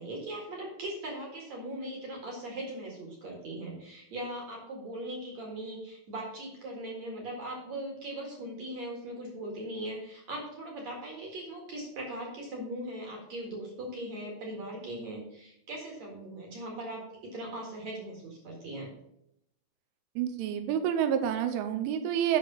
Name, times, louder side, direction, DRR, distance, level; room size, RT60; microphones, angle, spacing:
voice 1, 0.0-18.9, right 1 dB, 50° right, -1 dB, 2.1 m, -39 dB
voice 2, 20.2-22.4, right 9 dB, 80° right, 7 dB, 3.2 m, -28 dB
8.5 x 6.1 x 5.2 m, 0.77 s
omnidirectional pair, 5.7 m